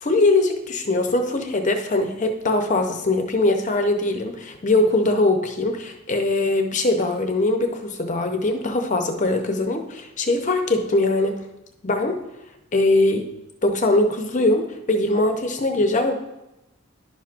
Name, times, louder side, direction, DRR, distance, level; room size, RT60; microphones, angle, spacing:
voice 1, 0.0-11.4 11.8-12.2 12.7-13.3 13.6-16.2, left 2 dB, 35° left, 5 dB, 0.7 m, -21 dB
11.0 x 5.9 x 2.5 m, 0.95 s
head